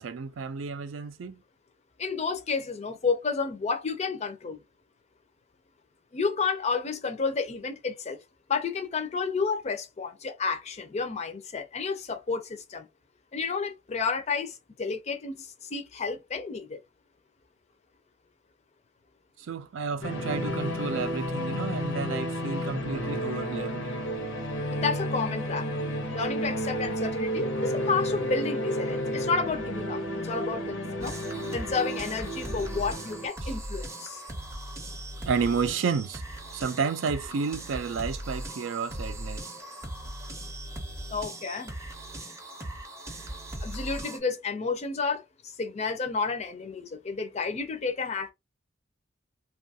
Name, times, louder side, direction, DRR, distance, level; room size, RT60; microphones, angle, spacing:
voice 1, 0.0-1.4 19.5-23.9 33.4-33.5 35.3-36.2 36.5-39.5, right 5 dB, 80° right, 0.4 m, -31 dB
voice 2, 2.0-4.6 6.1-8.2 8.5-12.9 13.3-16.8 24.7-25.7 26.1-31.2 31.5-34.2 41.1-41.7 43.6-48.3, left 4 dB, 35° left, 0.4 m, -31 dB
sound 1, 20.0-33.3, equal, 80° left, 0.7 m, -31 dB
sound 2, 31.0-44.2, right 1 dB, 15° right, 0.5 m, -39 dB
2.6 x 2.3 x 2.7 m
head